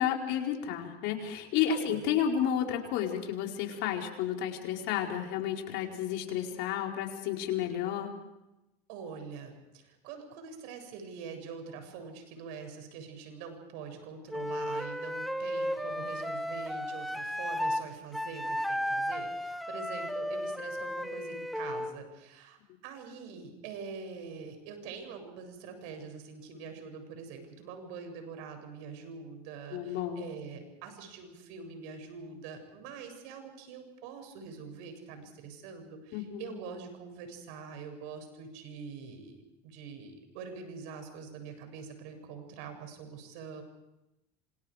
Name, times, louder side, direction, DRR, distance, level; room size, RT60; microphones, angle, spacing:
voice 1, 0.0-8.1 29.7-30.3 36.1-36.5, left 9 dB, 65° left, 2 dB, 4.7 m, -31 dB
voice 2, 1.7-2.0 8.9-43.6, right 5 dB, 70° right, 6 dB, 7.7 m, -44 dB
Wind instrument woodwind instrument, 14.3-17.8 18.1-21.9, equal, ahead, 1.6 m, -34 dB
28.0 x 26.5 x 5.1 m, 0.94 s
supercardioid pair, 105°, 21 cm